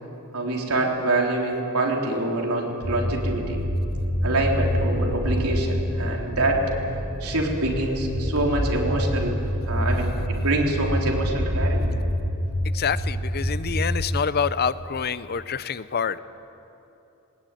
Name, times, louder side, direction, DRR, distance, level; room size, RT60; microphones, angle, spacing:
voice 1, 0.3-3.6 4.2-6.7 7.2-11.9, right 2 dB, 90° right, 0 dB, 3.8 m, -25 dB
sound 1, 2.8-14.0, equal, 60° right, 4.6 m, -26 dB
voice 2, 12.6-16.2, left 6 dB, 45° left, 15 dB, 0.6 m, -27 dB
20.5 x 20.0 x 9.3 m, 2.9 s
head